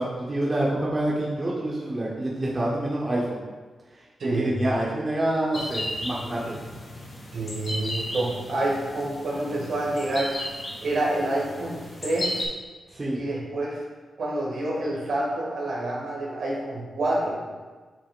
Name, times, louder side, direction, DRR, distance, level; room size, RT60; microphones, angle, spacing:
voice 1, 0.0-3.4 4.2-6.6 12.9-13.2, right 1 dB, 25° right, -5 dB, 0.9 m, -27 dB
voice 2, 4.2-4.6 7.3-10.3 10.8-12.3 13.1-13.8 14.2-17.4, right 1 dB, 65° right, -3 dB, 1.9 m, -28 dB
sound 1, 5.5-12.4, left 1 dB, 40° left, 1.4 m, -35 dB
8.3 x 5.8 x 2.4 m, 1.4 s
wide cardioid pair, 150°, 0 cm